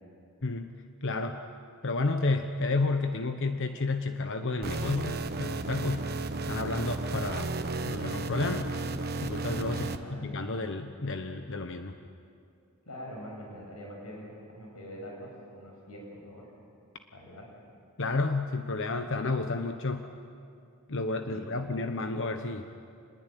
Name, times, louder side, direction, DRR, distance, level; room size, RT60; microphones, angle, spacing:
voice 1, 1.0-1.4 1.8-6.0 6.5-7.5 7.9-8.7 9.2-12.0 18.0-20.1 20.9-22.7, left 3 dB, 55° left, 6 dB, 1.1 m, -31 dB
sound 1, 4.6-10.0, right 3 dB, 45° right, 1.2 m, -33 dB
voice 2, 9.7-10.3 12.9-16.5 17.1-17.4 21.2-21.8, equal, 80° left, -1 dB, 7.4 m, -44 dB
27.5 x 21.0 x 9.2 m, 2.4 s
head